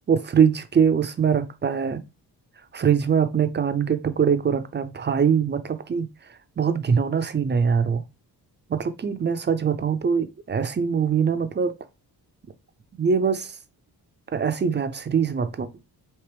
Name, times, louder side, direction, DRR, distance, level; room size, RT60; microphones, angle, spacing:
voice 1, 0.1-2.0 2.7-6.1 6.6-8.0 8.7-11.8 13.0-13.6 14.3-15.7, right 7 dB, 30° right, 0.4 m, -22 dB
4.5 x 2.9 x 3.3 m
wide cardioid pair, 135°, 39 cm